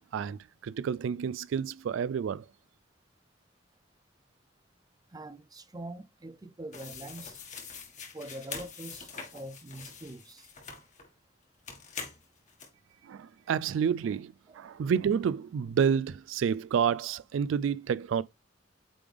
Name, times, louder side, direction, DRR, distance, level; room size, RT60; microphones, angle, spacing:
voice 1, 0.1-2.4 13.0-18.2, right 7 dB, 90° right, 0.3 m, -29 dB
voice 2, 5.1-7.4 8.1-10.5 14.5-14.6, right 1 dB, 20° right, 0.5 m, -44 dB
sound 1, 6.7-11.1 11.7-12.7, left 5 dB, 40° left, 1.7 m, -44 dB
8.5 x 3.5 x 3.4 m
head